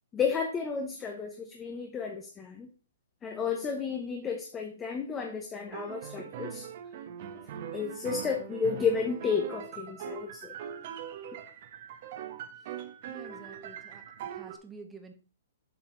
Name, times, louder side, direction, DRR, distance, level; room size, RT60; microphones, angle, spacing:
voice 1, 0.1-2.7 3.2-6.7 7.7-10.5, left 6 dB, 15° left, 3 dB, 0.9 m, -32 dB
sound 1, 5.7-14.6, right 9 dB, 50° right, 1.1 m, -41 dB
voice 2, 13.1-14.0 14.3-15.1, right 4 dB, 10° right, 5 dB, 1.1 m, -49 dB
7.4 x 5.0 x 3.9 m, 0.36 s
hypercardioid pair, 140°, 0 cm